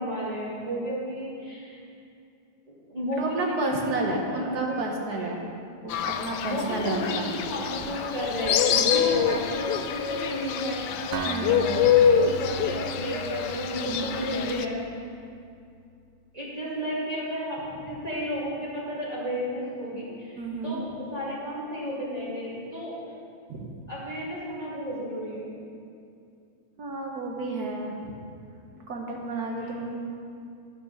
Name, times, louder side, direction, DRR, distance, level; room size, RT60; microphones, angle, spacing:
voice 1, 0.0-1.8 2.9-4.0 4.3-5.3 6.4-10.8 12.1-14.8 16.3-17.6 17.8-20.4 20.6-23.0 23.9-25.5 29.6-29.7, equal, 20° right, -9 dB, 2.5 m, -32 dB
voice 2, 3.1-5.4 5.8-7.3 8.8-9.1 11.2-12.0 13.9-14.2 20.3-20.8 23.5-23.7 26.8-28.1 28.9-30.0, right 2 dB, 55° right, 0 dB, 1.5 m, -31 dB
Fowl, 5.9-14.6, left 8 dB, 75° left, 1.0 m, -25 dB
Acoustic guitar, 11.1-15.0, right 4 dB, 80° right, 1.4 m, -37 dB
12.0 x 6.0 x 6.5 m, 2.5 s
omnidirectional pair, 2.2 m